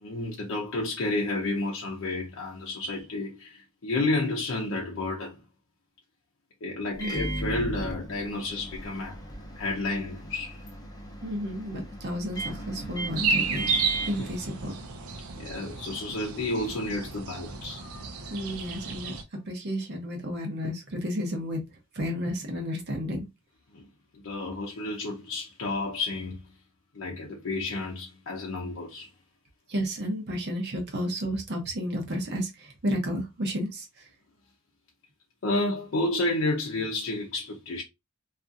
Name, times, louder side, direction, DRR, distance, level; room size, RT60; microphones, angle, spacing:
voice 1, 0.0-5.4 6.6-9.2 9.5-10.6 15.4-18.4 23.7-23.9 24.1-26.4 26.9-29.1 35.4-37.8, left 2 dB, 65° left, 0.6 m, -31 dB
Microwave oven, 6.9-15.1, right 2 dB, 20° left, 0.6 m, -37 dB
voice 2, 11.2-14.8 18.3-19.1 19.5-21.6 21.9-23.3 29.7-34.1, equal, 50° right, 0.7 m, -32 dB
sound 1, 13.2-19.2, right 5 dB, 90° right, 0.5 m, -32 dB
2.6 x 2.4 x 2.4 m
head